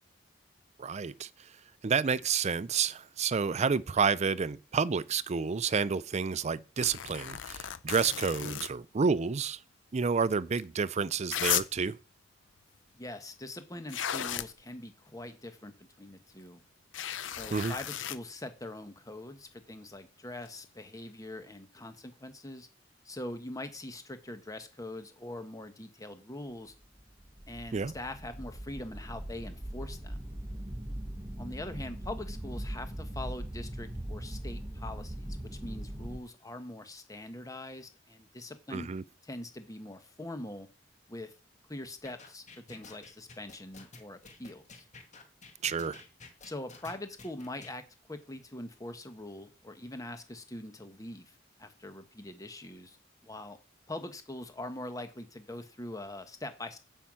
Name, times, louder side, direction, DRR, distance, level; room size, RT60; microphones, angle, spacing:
voice 1, 0.8-1.3 1.8-9.6 9.9-12.0 17.5-17.7 27.7-27.9 38.7-39.0 45.6-46.0, right 5 dB, 35° right, 0.4 m, -29 dB
sound 1, 6.8-8.7 10.6-10.7 11.3-11.8 13.5-13.6 13.9-14.5 16.9-18.2 20.5-20.6, left 10 dB, 75° left, 0.6 m, -34 dB
voice 2, 12.9-16.6 17.3-22.7 23.0-26.7 27.5-30.2 31.4-38.9 39.2-40.7 41.1-41.3 41.7-44.9 46.4-47.8 48.1-53.0 53.2-53.6 53.9-56.8, left 1 dB, 20° left, 1.3 m, -43 dB
sound 2, 27.0-36.2, right 1 dB, 15° right, 1.2 m, -40 dB
sound 3, 42.0-47.7, left 3 dB, 40° left, 1.8 m, -51 dB
9.9 x 5.6 x 7.5 m
head